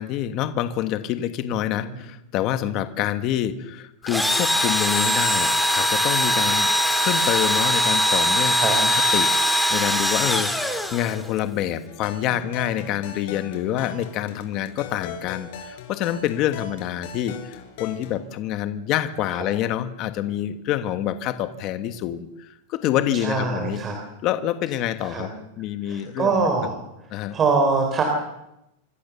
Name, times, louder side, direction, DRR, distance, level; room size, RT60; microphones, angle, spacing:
voice 1, 0.0-6.7 7.0-23.8 24.2-26.7 27.1-27.4, left 11 dB, 30° left, 10 dB, 1.4 m, -27 dB
Engine / Drill, 4.1-11.4, equal, ahead, 2.0 m, -21 dB
sound 1, 11.9-18.2, left 7 dB, 45° left, 5.2 m, -39 dB
voice 2, 23.2-23.9 25.0-25.2 25.9-26.8 27.3-28.0, right 4 dB, 15° right, 3 dB, 3.4 m, -23 dB
26.0 x 25.0 x 7.0 m, 0.86 s
supercardioid pair, 180°, 0 cm